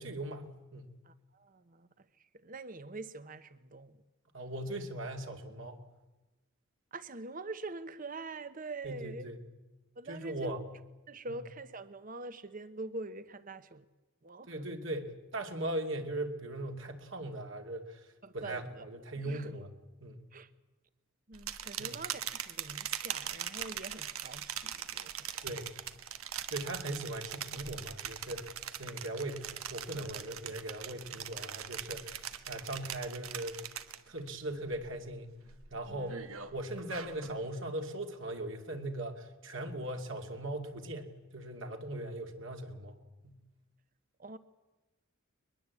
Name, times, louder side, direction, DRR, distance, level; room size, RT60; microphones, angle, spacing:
voice 1, 0.0-0.9 4.3-5.8 8.8-9.4 10.1-10.6 14.5-18.1 18.3-19.7 20.0-20.2 21.8-22.0 25.4-25.7 26.5-33.6 34.1-35.4 35.7-36.1 36.5-43.0 43.2-43.4, right 1 dB, 60° right, 2.7 m, -39 dB
voice 2, 1.0-4.0 6.9-9.3 9.9-10.5 11.1-13.8 14.2-14.6 18.2-18.8 19.1-19.5 20.3-20.5 21.3-25.5 29.0-29.2 35.9-36.1 44.2-44.4, right 3 dB, 40° right, 1.1 m, -45 dB
sound 1, 21.3-34.3 34.6-35.1 35.5-37.4, right 9 dB, 85° right, 1.4 m, -41 dB
22.0 x 21.5 x 8.4 m
head